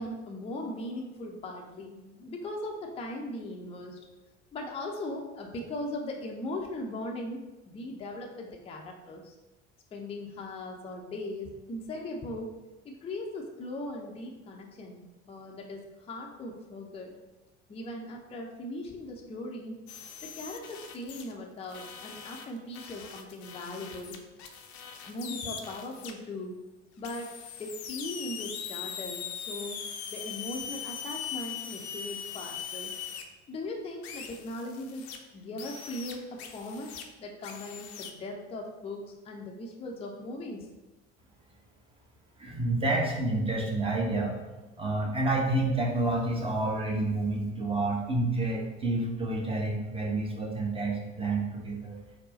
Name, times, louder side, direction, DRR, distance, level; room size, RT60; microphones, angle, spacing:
voice 1, 0.0-4.0 4.5-7.4 7.7-9.3 9.9-12.5 12.8-15.8 16.1-17.1 17.7-19.8 20.4-24.2 25.1-26.6 27.0-27.3 27.6-29.8 30.1-32.9 33.5-35.0 35.3-36.2 36.5-36.9 37.2-40.6, left 1 dB, 15° left, 0 dB, 0.5 m, -39 dB
sound 1, 19.9-21.3 21.7-26.1 27.0-33.2 34.0-35.2 35.6-37.0 37.4-38.1, left 7 dB, 60° left, 0.5 m, -41 dB
voice 2, 42.4-44.3 44.8-52.0, right 2 dB, 15° right, -1 dB, 0.8 m, -29 dB
4.4 x 2.0 x 4.0 m, 1.1 s
figure-of-eight pair, 65°, 36 cm